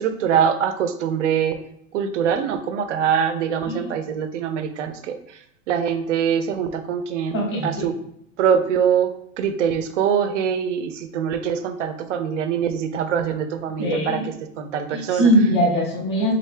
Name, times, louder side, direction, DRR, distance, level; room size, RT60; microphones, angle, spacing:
voice 1, 0.0-1.6 1.9-5.2 5.7-8.0 8.4-9.1 9.4-15.3, right 8 dB, 50° right, 9 dB, 0.5 m, -23 dB
voice 2, 7.3-7.8 13.8-14.3 14.9-16.3, equal, 20° left, -2 dB, 0.4 m, -21 dB
3.9 x 3.7 x 3.2 m, 0.74 s
supercardioid pair, 165°, 48 cm